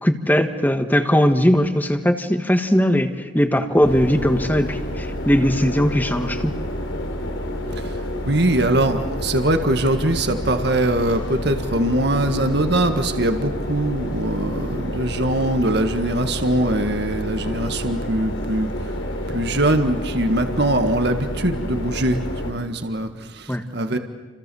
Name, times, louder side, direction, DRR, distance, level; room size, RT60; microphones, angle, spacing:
voice 1, 0.0-6.5 23.5-23.6, equal, 10° left, 7 dB, 1.6 m, -19 dB
sound 1, 3.8-22.5, equal, 90° left, 3.8 m, -29 dB
voice 2, 8.3-18.9 19.3-24.0, right 1 dB, 60° right, 7 dB, 1.7 m, -22 dB
30.0 x 27.0 x 7.1 m, 1.4 s
head